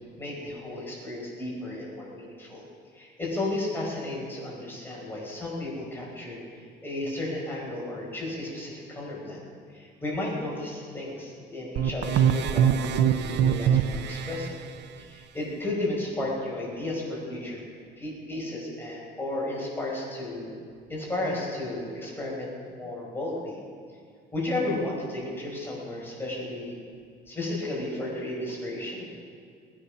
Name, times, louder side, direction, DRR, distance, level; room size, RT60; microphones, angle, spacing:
voice 1, 0.2-2.6 2.9-9.5 9.7-14.6 15.0-17.6 18.0-20.5 20.9-23.6 24.3-26.8 27.3-29.1, left 2 dB, 10° left, -4 dB, 5.3 m, -33 dB
sound 1, 11.8-14.5, right 9 dB, 60° right, 0.9 m, -23 dB
20.0 x 10.0 x 6.1 m, 2.2 s
cardioid pair, 125°, 20 cm